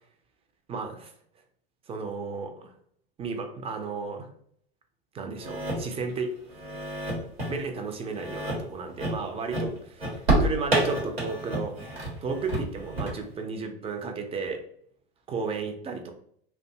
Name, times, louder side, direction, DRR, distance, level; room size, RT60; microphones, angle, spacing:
voice 1, 0.7-1.1 1.9-2.7 3.2-4.3 5.1-6.3 7.5-11.7 12.2-14.6 15.3-16.1, right 4 dB, 20° right, 5 dB, 0.4 m, -33 dB
sound 1, 5.4-6.2 6.5-7.6 8.1-8.6 9.0-9.2 9.5-13.1, right 1 dB, 90° right, 1.1 m, -29 dB
2.5 x 2.2 x 2.7 m, 0.65 s
hypercardioid pair, 85°, 30 cm